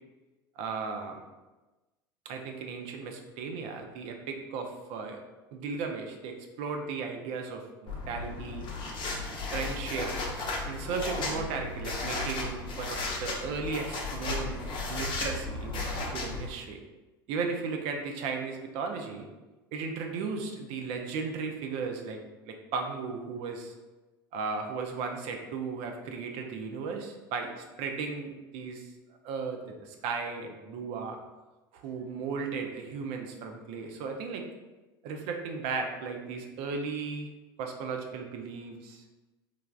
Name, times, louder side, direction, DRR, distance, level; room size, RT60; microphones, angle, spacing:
voice 1, 0.6-1.2 2.2-5.2 5.5-8.7 9.5-10.1 10.7-14.6 14.9-16.8 17.3-19.3 19.7-22.2 22.5-23.7 24.3-28.9 29.2-31.2 31.7-34.5 35.0-37.3 37.6-39.0, right 5 dB, 55° right, 3 dB, 0.5 m, -35 dB
sound 1, 7.9-16.5, left 3 dB, 40° left, 0.7 m, -35 dB
3.3 x 2.3 x 2.3 m, 1.1 s
hypercardioid pair, 80°, 13 cm